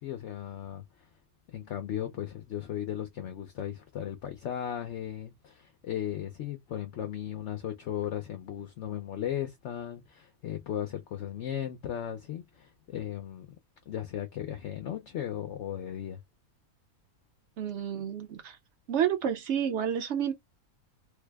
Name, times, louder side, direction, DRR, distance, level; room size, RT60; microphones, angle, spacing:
voice 1, 0.0-1.1 1.5-13.5 13.9-16.2, left 10 dB, 65° left, 0.8 m, -36 dB
voice 2, 17.6-18.6 18.9-20.3, right 9 dB, 60° right, 0.9 m, -30 dB
3.3 x 2.1 x 3.3 m
omnidirectional pair, 1.5 m